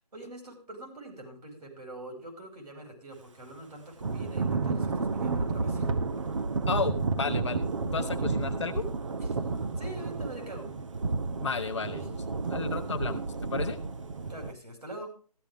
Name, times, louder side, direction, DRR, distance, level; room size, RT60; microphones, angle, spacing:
voice 1, 0.1-5.9 9.2-9.5 9.8-10.7 12.0-12.1 14.3-15.1, right 1 dB, 80° right, 2 dB, 5.5 m, -44 dB
Thunder / Rain, 4.0-14.5, right 4 dB, 50° right, 1.0 m, -31 dB
voice 2, 6.7-8.9 11.4-13.8, left 5 dB, 50° left, 11 dB, 1.3 m, -33 dB
14.5 x 11.5 x 3.5 m, 0.39 s
hypercardioid pair, 165°, 20 cm